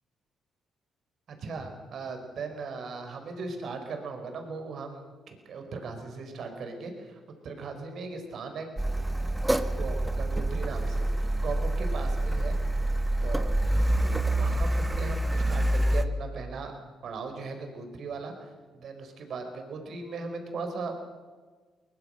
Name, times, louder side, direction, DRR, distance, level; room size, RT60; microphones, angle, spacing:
voice 1, 1.3-8.8 9.7-12.6 13.2-13.6 14.0-21.0, right 4 dB, 60° right, 5 dB, 4.4 m, -38 dB
Car, 8.8-16.1, right 1 dB, 10° right, 1.3 m, -27 dB
21.5 x 20.5 x 6.5 m, 1.4 s
cardioid pair, 90°, 0 cm